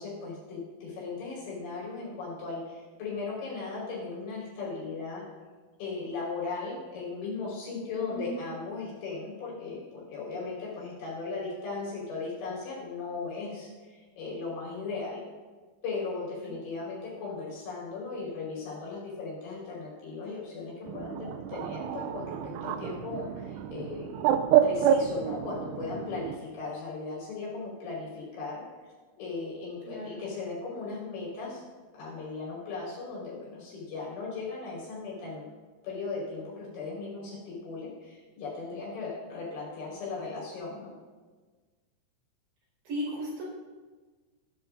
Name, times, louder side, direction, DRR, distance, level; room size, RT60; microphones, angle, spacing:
voice 1, 0.0-5.2 5.8-15.2 15.8-24.3 24.6-28.6 29.2-31.6 31.9-35.5 35.8-40.9, left 4 dB, 75° left, -5 dB, 7.0 m, -37 dB
Bird, 20.9-26.4, right 9 dB, 80° right, 2.6 m, -28 dB
voice 2, 29.8-30.2 42.9-43.4, equal, 65° right, -5 dB, 7.0 m, -35 dB
20.0 x 12.5 x 2.7 m, 1.4 s
omnidirectional pair, 5.1 m